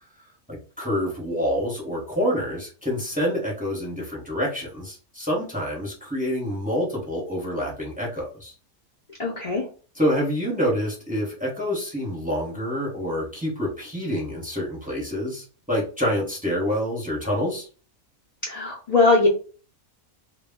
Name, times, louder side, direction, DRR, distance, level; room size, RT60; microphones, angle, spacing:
voice 1, 0.5-8.5 10.0-17.7, equal, 10° right, -2 dB, 0.7 m, -27 dB
voice 2, 9.2-9.6 18.5-19.3, left 3 dB, 60° left, -3 dB, 0.4 m, -20 dB
2.2 x 2.1 x 3.4 m, 0.38 s
omnidirectional pair, 1.5 m